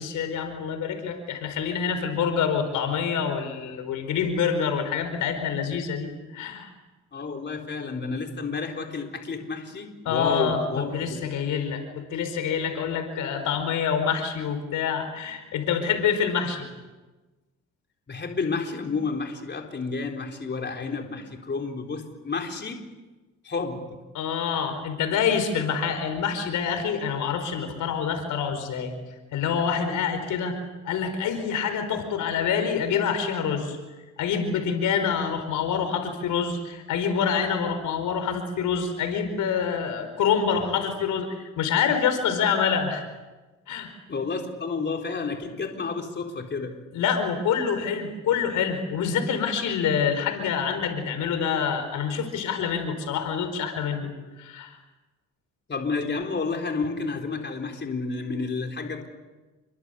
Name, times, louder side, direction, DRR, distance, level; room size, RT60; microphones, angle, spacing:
voice 1, 0.0-6.7 10.0-16.7 24.1-28.9 29.3-30.6 30.8-33.8 34.2-43.0 43.7-43.9 46.9-54.1 54.4-54.7, left 7 dB, 80° left, 7 dB, 4.9 m, -26 dB
voice 2, 7.1-11.3 18.1-22.8 23.4-23.8 44.1-46.7 55.7-59.1, left 4 dB, 35° left, 2 dB, 4.0 m, -30 dB
28.5 x 23.5 x 8.3 m, 1.2 s
cardioid pair, 90°, 30 cm